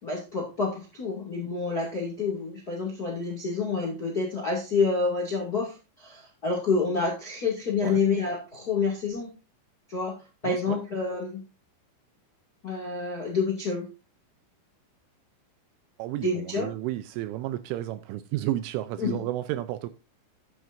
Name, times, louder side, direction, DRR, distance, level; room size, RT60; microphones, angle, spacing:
voice 1, 0.0-9.3 9.9-10.1 10.4-11.4 12.6-13.9 16.2-16.7 19.0-19.2, left 4 dB, 40° left, 1.2 m, -28 dB
voice 2, 10.4-10.8 16.0-19.9, right 14 dB, 80° right, 2.9 m, -32 dB
11.5 x 9.3 x 2.6 m
omnidirectional pair, 6.0 m